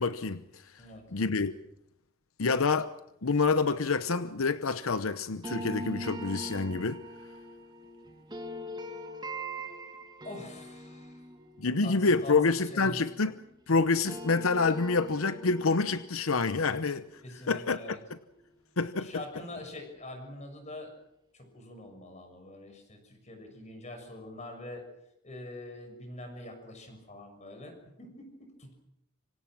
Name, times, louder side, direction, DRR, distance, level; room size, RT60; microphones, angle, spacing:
voice 1, 0.0-0.6 1.1-1.6 2.4-3.0 3.2-7.0 11.6-13.3 13.7-17.0 17.5-18.0 18.8-19.1, left 4 dB, 85° left, 0.9 m, -27 dB
sound 1, 5.4-13.5 13.8-18.8, right 1 dB, 20° right, 2.5 m, -43 dB
voice 2, 10.2-11.2 11.6-13.0 17.2-18.0 19.0-20.9 21.3-24.8 25.2-28.7, left 1 dB, 35° left, 6.4 m, -44 dB
26.0 x 26.0 x 6.1 m
head